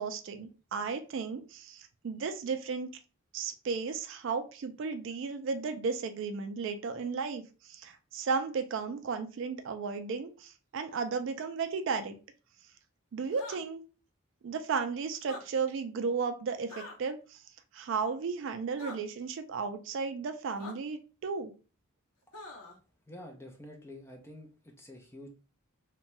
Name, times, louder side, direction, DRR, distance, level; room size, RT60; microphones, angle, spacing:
voice 1, 0.0-2.9 3.3-12.2 13.1-13.8 14.4-17.4 17.7-21.5, right 5 dB, 55° right, 8 dB, 0.3 m, -34 dB
sound 1, 13.3-13.6 15.2-15.4 16.7-17.0 18.8-19.0 20.6-20.7 22.3-22.8, left 2 dB, 90° left, 0.7 m, -44 dB
voice 2, 23.1-25.3, left 1 dB, 10° left, 2 dB, 0.4 m, -48 dB
2.6 x 2.2 x 3.0 m, 0.34 s
head